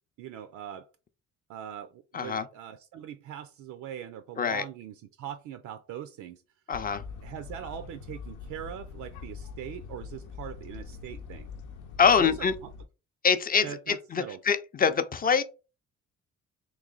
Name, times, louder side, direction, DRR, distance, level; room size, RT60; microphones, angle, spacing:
voice 1, 0.2-0.9 1.5-6.4 7.2-11.5 12.2-12.7 13.6-14.4, right 10 dB, 75° right, 0.5 m, -41 dB
voice 2, 2.1-2.5 4.4-4.6 6.7-7.0 12.0-12.5 13.2-15.4, left 6 dB, 30° left, 0.5 m, -24 dB
sound 1, 6.7-12.9, left 5 dB, 85° left, 0.7 m, -43 dB
3.1 x 3.0 x 3.8 m
cardioid pair, 90°, 30 cm